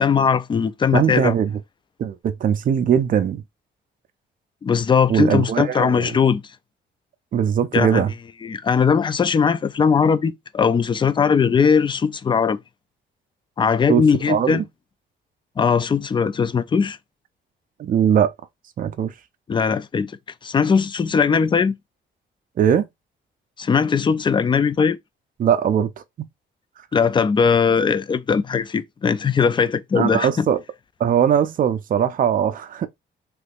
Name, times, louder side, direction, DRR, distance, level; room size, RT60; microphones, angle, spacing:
voice 1, 0.0-1.3 4.6-6.4 7.7-8.0 8.4-12.6 13.6-14.6 15.6-17.0 19.5-20.1 20.4-21.7 23.6-25.0 26.9-30.5, left 6 dB, 25° left, 0.3 m, -19 dB
voice 2, 0.9-1.5 2.0-3.4 5.1-6.2 7.3-8.1 13.9-14.6 17.8-18.3 18.8-19.1 22.6-22.9 25.4-25.9 26.2-26.3 29.9-30.6 31.0-32.9, right 8 dB, 45° right, 0.5 m, -20 dB
3.2 x 3.1 x 2.4 m
cardioid pair, 90°, 20 cm